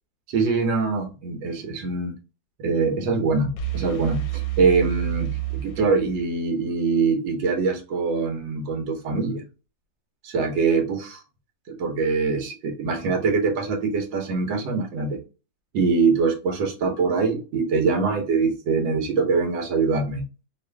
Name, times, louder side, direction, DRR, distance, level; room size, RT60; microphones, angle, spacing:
voice 1, 0.3-2.1 2.6-9.4 10.2-11.2 11.7-15.2 15.7-20.2, right 4 dB, 75° right, 1.6 m, -23 dB
sound 1, 3.6-6.5, right 14 dB, 65° left, 0.9 m, -29 dB
3.6 x 2.5 x 3.3 m
omnidirectional pair, 2.1 m